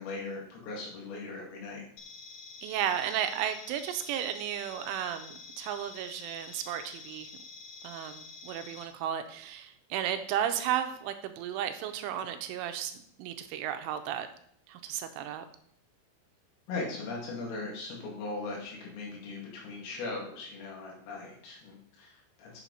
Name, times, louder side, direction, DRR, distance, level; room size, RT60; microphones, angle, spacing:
voice 1, 0.0-1.8 16.7-22.6, left 3 dB, 85° left, -3 dB, 5.1 m, -39 dB
sound 1, 2.0-8.8, left 4 dB, 70° left, 2.6 m, -48 dB
voice 2, 2.6-7.3 7.8-12.9 13.2-14.3 14.7-15.4, right 10 dB, 85° right, 8 dB, 3.0 m, -34 dB
8.4 x 7.2 x 4.1 m, 0.65 s
omnidirectional pair, 5.8 m